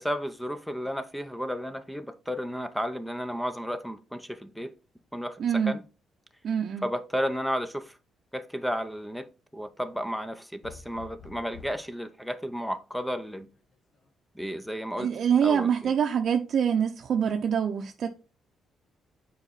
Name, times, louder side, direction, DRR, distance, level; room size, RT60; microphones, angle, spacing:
voice 1, 0.0-4.8 5.1-5.8 6.8-7.9 8.3-13.5 14.4-15.1 15.4-15.9, equal, 5° left, 0.7 m, -33 dB
voice 2, 5.4-5.8 6.4-6.8 15.0-18.1, right 7 dB, 60° right, 0.7 m, -25 dB
sound 1, 10.6-11.9 13.5-14.1, left 5 dB, 65° left, 1.5 m, -48 dB
7.2 x 4.8 x 4.1 m
cardioid pair, 90°, 0 cm